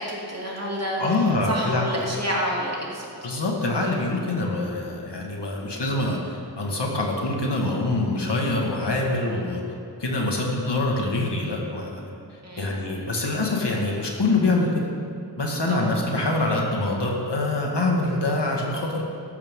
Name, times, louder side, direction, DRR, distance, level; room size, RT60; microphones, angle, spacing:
voice 1, 0.1-1.2 1.5-3.1 12.4-12.7 15.7-15.9, equal, 35° right, -4 dB, 2.8 m, -28 dB
voice 2, 1.0-1.8 3.2-9.6 10.0-14.9 15.4-19.0, left 2 dB, 75° left, -1 dB, 2.0 m, -25 dB
13.5 x 12.0 x 3.8 m, 2.7 s
wide cardioid pair, 70°, 42 cm